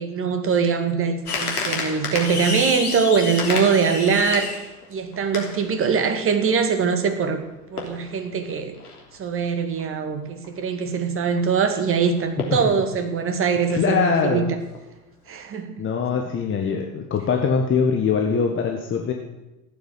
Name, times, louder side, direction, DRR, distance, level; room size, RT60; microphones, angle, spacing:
voice 1, 0.0-4.6 4.9-7.4 7.7-8.7 9.2-14.6 15.3-15.8, right 6 dB, 25° right, 8 dB, 2.1 m, -22 dB
sound 1, 1.3-6.0 6.7-6.8 7.0-7.4 7.8-9.2 9.6-9.8 10.3-10.5 10.9-11.0 11.2-11.4 12.0-12.1 12.4-12.7 13.2-13.3 13.8-14.2 14.7-15.0 15.3-15.4, left 4 dB, 70° left, 3.4 m, -29 dB
voice 2, 13.7-14.5 15.8-19.1, left 6 dB, 25° left, 3 dB, 1.7 m, -22 dB
15.0 x 9.4 x 8.3 m, 0.99 s
figure-of-eight pair, 80°, 46 cm